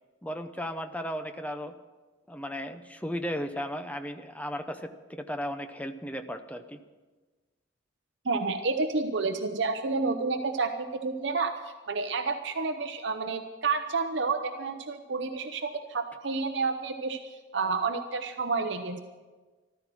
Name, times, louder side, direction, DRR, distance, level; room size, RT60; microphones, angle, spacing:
voice 1, 0.2-1.7 2.3-6.8, equal, 10° left, 7 dB, 0.7 m, -35 dB
voice 2, 8.2-17.2 17.5-19.0, right 4 dB, 70° right, 7 dB, 0.8 m, -30 dB
14.0 x 13.0 x 6.2 m, 1.3 s
head